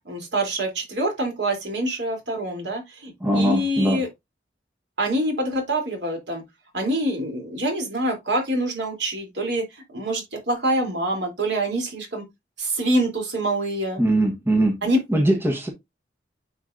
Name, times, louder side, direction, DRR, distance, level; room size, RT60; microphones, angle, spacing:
voice 1, 0.0-4.1 5.0-6.4 6.7-9.6 9.9-12.2 12.6-14.0 14.8-15.0, right 1 dB, 75° right, 3.2 m, -25 dB
voice 2, 3.2-4.0 14.0-14.8 15.1-15.7, right 1 dB, 15° right, 1.2 m, -21 dB
9.5 x 5.4 x 2.6 m
head